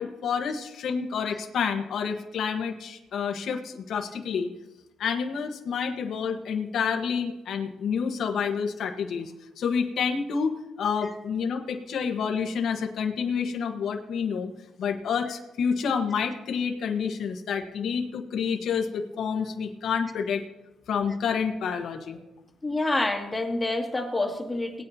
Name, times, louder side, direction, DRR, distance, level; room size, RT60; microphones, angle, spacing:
voice 1, 0.0-4.5 5.0-14.5 14.8-20.4 20.9-22.2, left 6 dB, 65° left, 4 dB, 1.3 m, -29 dB
voice 2, 22.6-24.8, left 2 dB, 15° left, 1 dB, 2.3 m, -27 dB
19.0 x 9.4 x 2.9 m, 1.0 s
cardioid pair, 90°, 0 cm